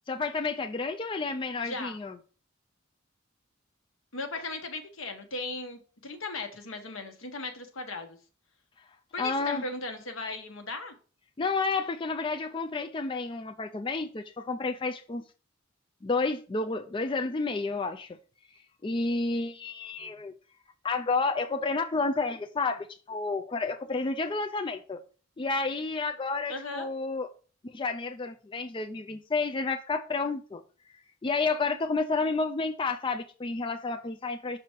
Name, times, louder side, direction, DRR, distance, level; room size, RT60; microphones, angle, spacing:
voice 1, 0.1-2.2 9.2-9.6 11.4-15.2 16.0-18.2 18.8-20.3 20.8-25.0 25.4-27.3 27.7-30.6 31.2-34.6, left 3 dB, 25° left, 0.4 m, -30 dB
voice 2, 1.6-2.0 4.1-8.2 9.1-10.9 26.5-26.9, left 3 dB, 80° left, 1.3 m, -37 dB
6.0 x 4.5 x 4.4 m
head